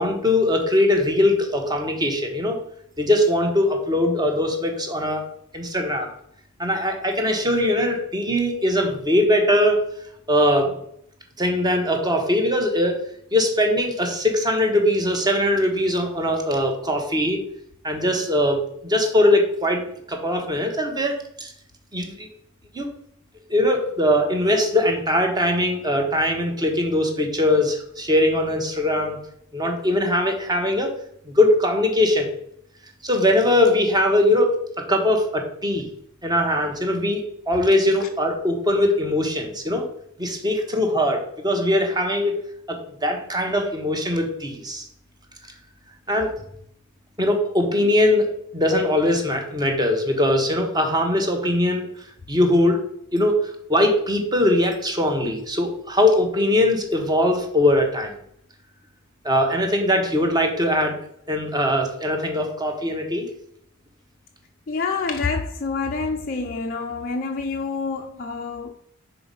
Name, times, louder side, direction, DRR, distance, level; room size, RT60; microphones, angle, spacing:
voice 1, 0.0-2.6 3.0-5.2 5.5-6.1 6.6-9.8 10.3-10.7 11.4-13.0 13.3-17.4 17.8-21.5 21.9-22.3 22.7-22.9 23.5-29.2 29.5-30.9 31.3-32.3 33.0-34.6 34.9-35.9 36.2-39.8 40.2-42.4 42.7-44.9 46.1-46.3 47.2-51.9 52.3-52.8 53.1-53.4 53.7-58.1 59.2-60.9 61.3-63.3, left 1 dB, 20° right, 1.0 m, -21 dB
voice 2, 64.7-68.7, left 4 dB, 40° left, 0.4 m, -27 dB
5.9 x 4.1 x 5.4 m
head